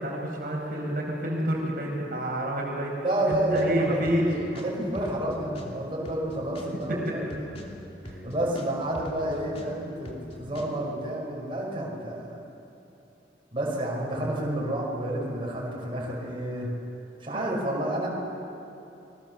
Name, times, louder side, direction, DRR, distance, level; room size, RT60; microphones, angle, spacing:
voice 1, 0.0-2.9 3.3-4.3 6.9-7.2 8.0-8.2 17.3-17.5, equal, 55° right, -2 dB, 4.8 m, -29 dB
voice 2, 3.0-7.5 8.2-12.4 13.5-16.7 17.2-18.1, right 1 dB, 30° right, -3 dB, 5.5 m, -30 dB
sound 1, 3.3-5.7 6.0-9.7 10.0-10.7, equal, 35° left, 3.0 m, -43 dB
28.5 x 22.0 x 7.1 m, 2.9 s
head